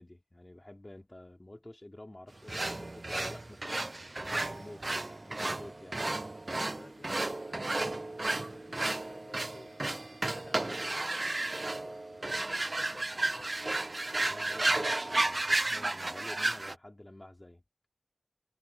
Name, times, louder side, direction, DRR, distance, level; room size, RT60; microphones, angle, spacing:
voice 1, 0.0-4.8 5.2-6.0 14.1-17.6, left 1 dB, 45° left, 3.1 m, -50 dB
sound 1, 2.5-16.7, right 2 dB, 70° right, 0.4 m, -33 dB
voice 2, 6.5-9.7 10.1-13.5, left 2 dB, 80° left, 6.5 m, -54 dB
wide cardioid pair, 45°, 0 cm